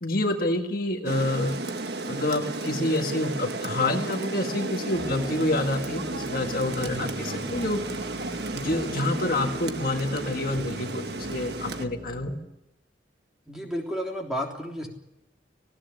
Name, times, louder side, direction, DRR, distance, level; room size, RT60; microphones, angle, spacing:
voice 1, 0.0-1.6 2.1-7.8 8.5-12.3, left 1 dB, 50° left, 4 dB, 1.7 m, -27 dB
Rain, 1.1-11.9, right 2 dB, 65° right, 1.4 m, -33 dB
sound 1, 4.9-12.3, equal, 30° right, 6.1 m, -39 dB
voice 2, 13.5-14.9, equal, 5° right, 0 dB, 3.4 m, -31 dB
19.0 x 16.5 x 9.8 m, 0.87 s
head